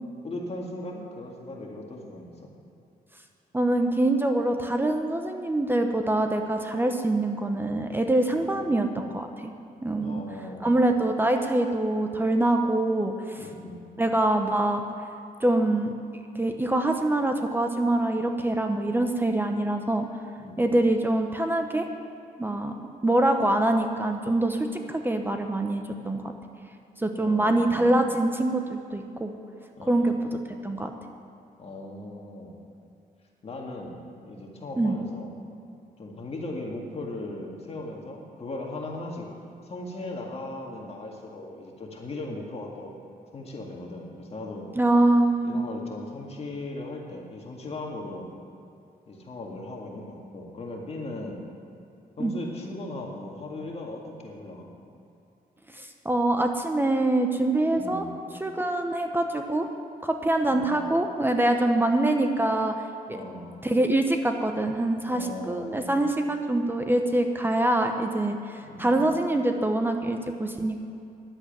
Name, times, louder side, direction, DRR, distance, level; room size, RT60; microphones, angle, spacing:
voice 1, 0.2-2.5 8.3-8.7 10.0-10.8 13.4-13.9 20.4-20.8 27.2-27.8 29.8-30.1 31.6-32.6 33.4-33.9 34.2-35.3 36.0-39.3 39.6-43.0 43.3-44.7 45.4-48.3 49.1-51.4 52.2-54.7 57.7-58.1 60.5-60.8 63.1-63.5 65.1-66.0 68.6-69.1, left 2 dB, 40° left, 0 dB, 2.0 m, -38 dB
voice 2, 3.5-9.3 9.8-10.2 10.6-13.1 14.0-14.8 15.4-15.9 16.4-20.1 20.6-21.9 22.4-22.7 23.0-26.3 27.0-29.3 29.9-30.2 30.6-30.9 34.8-34.9 44.8-45.6 52.2-52.3 55.7-58.0 58.4-59.7 60.0-62.7 63.1-63.2 63.6-70.8, right 1 dB, 15° right, 5 dB, 0.8 m, -24 dB
11.0 x 8.0 x 9.3 m, 2.6 s
cardioid pair, 110°, 16 cm